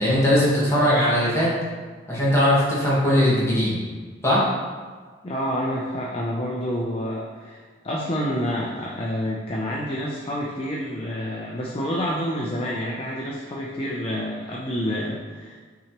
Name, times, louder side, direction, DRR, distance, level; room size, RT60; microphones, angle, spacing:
voice 1, 0.0-1.5 2.1-3.8 4.2-4.4, equal, 15° left, -8 dB, 1.3 m, -19 dB
voice 2, 5.2-15.6, equal, 30° left, -3 dB, 0.4 m, -28 dB
6.0 x 2.9 x 2.9 m, 1.5 s
head